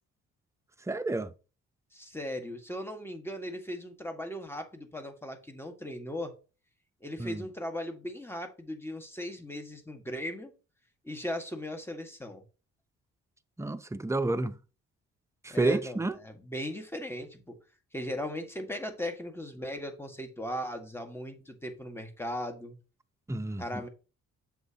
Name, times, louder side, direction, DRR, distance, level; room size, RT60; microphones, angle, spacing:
voice 1, 0.9-1.3 7.2-7.5 13.6-14.6 15.4-16.1 23.3-23.8, right 2 dB, 10° right, 0.7 m, -30 dB
voice 2, 1.9-6.3 7.0-10.5 11.0-12.4 15.5-17.6 17.9-22.8 23.6-23.9, left 1 dB, 10° left, 1.8 m, -38 dB
7.9 x 6.5 x 2.9 m
cardioid pair, 90°, 30 cm